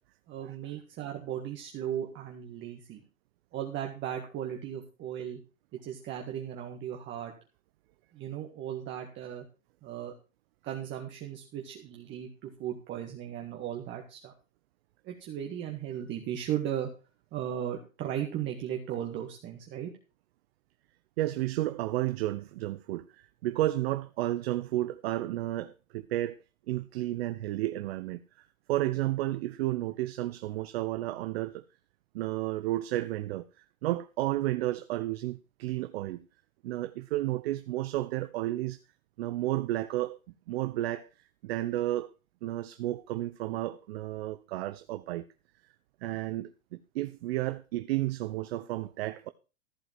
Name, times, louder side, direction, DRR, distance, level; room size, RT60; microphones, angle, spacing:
voice 1, 0.3-3.0 3.5-5.4 5.7-7.3 8.1-9.4 9.8-10.1 10.6-14.3 15.0-16.9 17.3-19.9, right 10 dB, 30° right, 1.7 m, -36 dB
voice 2, 21.2-26.4 26.7-28.2 28.7-31.6 32.1-33.4 33.8-36.2 36.6-38.8 39.2-40.2 40.5-41.1 41.4-42.1 42.4-45.3 46.0-49.3, right 16 dB, 50° right, 0.7 m, -32 dB
14.5 x 4.9 x 7.4 m
hypercardioid pair, 125°, 41 cm